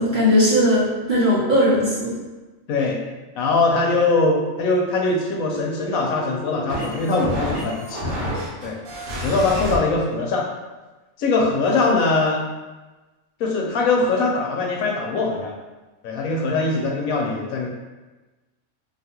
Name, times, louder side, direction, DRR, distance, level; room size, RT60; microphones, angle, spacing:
voice 1, 0.0-2.2, equal, 45° right, -9 dB, 0.7 m, -18 dB
voice 2, 2.7-3.0 3.4-8.2 8.6-8.8 9.2-10.5 11.2-12.4 13.4-15.5 16.0-17.7, left 3 dB, 80° left, -1 dB, 1.0 m, -21 dB
sound 1, 3.9-9.8, right 1 dB, 70° right, 1.1 m, -31 dB
2.7 x 2.3 x 2.8 m, 1.2 s
omnidirectional pair, 1.4 m